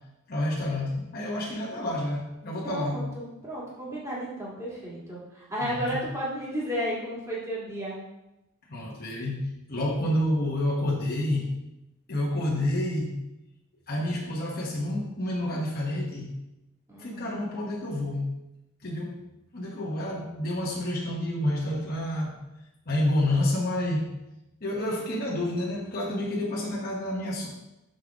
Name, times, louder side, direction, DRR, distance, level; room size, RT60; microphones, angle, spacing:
voice 1, 0.3-3.1 5.6-6.0 8.7-11.6 12.1-13.2 13.9-16.3 17.0-18.4 18.8-19.1 19.5-22.4 22.9-24.2 24.6-27.5, left 1 dB, 40° left, -4 dB, 1.1 m, -29 dB
voice 2, 2.6-8.0 16.9-17.4, equal, 15° right, -6 dB, 1.9 m, -33 dB
6.4 x 5.7 x 3.5 m, 0.91 s
head